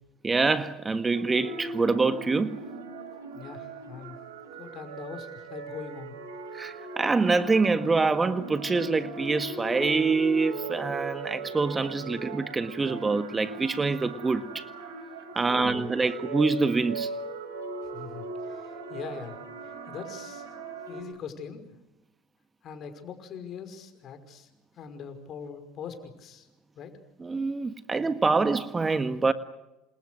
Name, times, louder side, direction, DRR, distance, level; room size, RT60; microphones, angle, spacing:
voice 1, 0.2-2.6 6.5-14.6 15.3-17.1 27.2-29.3, right 4 dB, 20° right, 1.6 m, -25 dB
sound 1, 1.1-21.0, right 3 dB, 80° right, 4.6 m, -39 dB
voice 2, 3.3-4.2 4.6-6.1 15.4-15.9 17.9-19.4 19.9-20.4 20.9-21.7 22.6-24.5 24.8-26.5 26.8-26.9, left 7 dB, 50° left, 5.6 m, -42 dB
29.0 x 27.0 x 6.6 m
hypercardioid pair, 75°, 0 cm